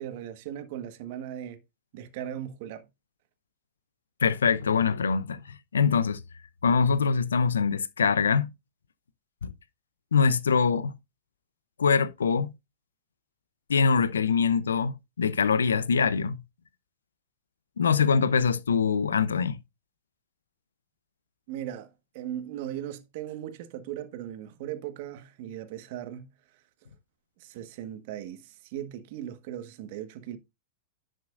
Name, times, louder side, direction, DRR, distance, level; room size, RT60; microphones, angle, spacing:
voice 1, 0.0-1.6 1.9-2.9 21.5-26.3 27.4-30.4, right 11 dB, 55° right, 1.5 m, -38 dB
voice 2, 4.2-6.2 6.6-8.5 9.4-9.5 10.1-10.9 11.8-12.5 13.7-16.4 17.8-19.6, left 5 dB, 85° left, 0.7 m, -24 dB
11.0 x 6.3 x 2.5 m
hypercardioid pair, 110°, 0 cm